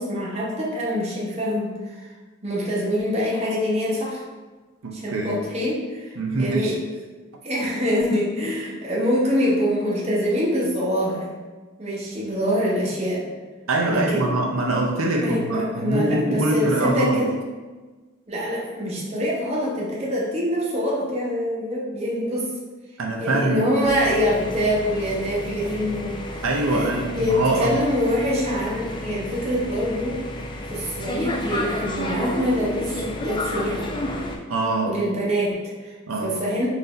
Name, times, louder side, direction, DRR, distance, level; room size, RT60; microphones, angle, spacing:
voice 1, 0.0-2.1 2.4-4.2 4.9-6.7 7.4-11.3 11.8-13.2 13.9-14.3 15.2-17.3 18.3-22.5 23.2-26.4 26.7-30.2 30.6-33.9 34.9-35.9 36.2-36.7, equal, 30° right, -5 dB, 0.8 m, -25 dB
voice 2, 4.8-5.4 6.2-6.7 13.7-17.2 23.0-23.6 26.4-27.8 34.5-35.0 36.1-36.3, right 2 dB, 90° right, -1 dB, 0.6 m, -23 dB
sound 1, 23.8-34.4, left 1 dB, 20° left, 0.3 m, -31 dB
4.0 x 2.6 x 3.9 m, 1.3 s
head